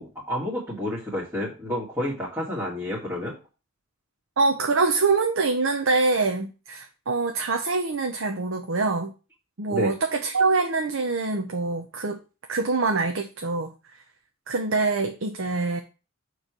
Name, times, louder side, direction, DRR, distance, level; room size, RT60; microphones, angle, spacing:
voice 1, 0.0-3.3 9.7-9.9, left 1 dB, 10° right, 2.0 m, -30 dB
voice 2, 4.4-9.1 9.6-12.2 12.5-13.7 14.5-15.8, right 3 dB, 70° right, 0.7 m, -24 dB
6.7 x 3.3 x 5.9 m
head